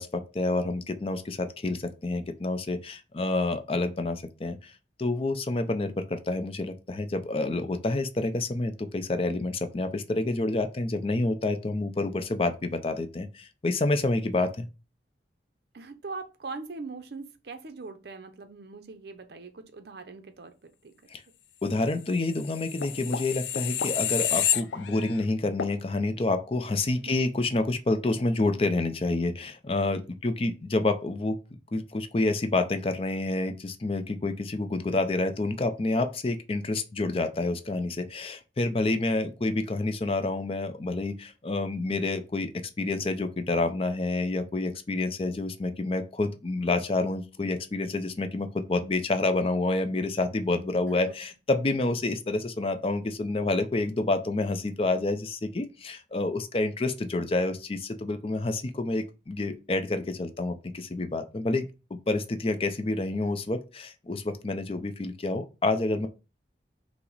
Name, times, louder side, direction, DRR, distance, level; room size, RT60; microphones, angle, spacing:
voice 1, 0.0-4.7 5.0-14.7 21.1-21.2 21.6-31.4 31.7-42.5 42.8-61.7 62.1-66.1, left 2 dB, 30° left, 0.4 m, -28 dB
voice 2, 15.7-20.9 27.1-27.2 51.1-51.2, right 3 dB, 65° right, 0.6 m, -41 dB
sound 1, 22.3-25.2 25.6-25.8, left 9 dB, 85° left, 0.4 m, -29 dB
5.6 x 2.1 x 3.9 m
head